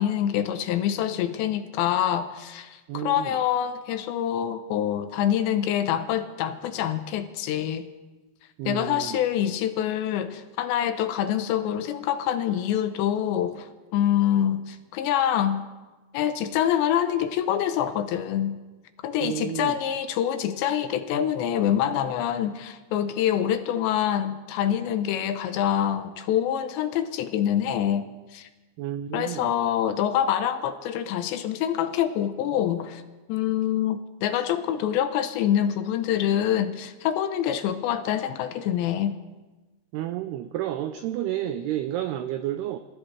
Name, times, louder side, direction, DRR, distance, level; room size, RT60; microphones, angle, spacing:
voice 1, 0.0-7.9 8.7-15.6 16.1-18.6 19.0-28.5 29.1-33.0 33.3-39.2, left 10 dB, 80° left, 9 dB, 2.9 m, -26 dB
voice 2, 2.9-3.4 8.6-9.2 19.2-19.8 28.8-29.5 39.9-42.8, right 12 dB, 90° right, 9 dB, 2.3 m, -31 dB
28.0 x 15.5 x 3.3 m, 1.2 s
omnidirectional pair, 5.4 m